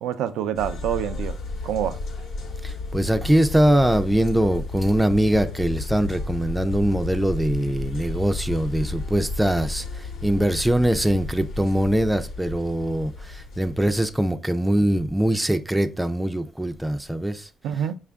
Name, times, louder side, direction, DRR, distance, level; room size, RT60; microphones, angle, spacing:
voice 1, 0.0-1.4 1.6-2.0 17.6-18.0, right 9 dB, 90° right, 0.4 m, -26 dB
sound 1, 0.6-14.4, left 3 dB, 70° left, 0.9 m, -33 dB
voice 2, 2.6-17.5, right 1 dB, 5° right, 0.4 m, -22 dB
4.9 x 2.4 x 3.4 m
cardioid pair, 90°, 0 cm